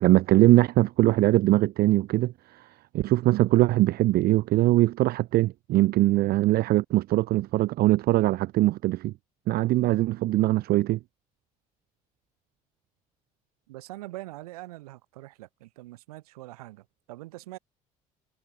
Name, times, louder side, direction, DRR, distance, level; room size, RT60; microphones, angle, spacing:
voice 1, 0.0-2.3 2.9-9.1 9.5-11.0, right 17 dB, 55° right, 0.4 m, -21 dB
voice 2, 13.7-17.6, right 18 dB, 85° right, 7.5 m, -43 dB
hypercardioid pair, 55°, 19 cm